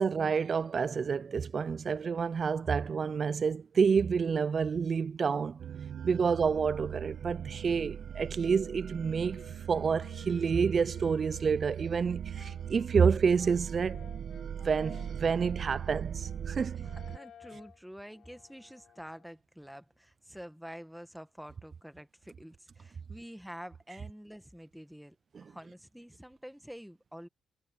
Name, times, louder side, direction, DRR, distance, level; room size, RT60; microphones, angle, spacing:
voice 1, 0.0-5.6 6.0-9.4 9.7-14.0 14.6-16.8 25.3-25.4, right 6 dB, 40° right, 0.3 m, -28 dB
sound 1, 5.6-17.2, right 9 dB, 60° right, 1.0 m, -40 dB
Brass instrument, 9.2-11.8 12.3-19.3, left 9 dB, 65° left, 4.8 m, -56 dB
voice 2, 16.9-25.1 25.4-27.3, equal, ahead, 1.6 m, -48 dB
cardioid pair, 90°, 0 cm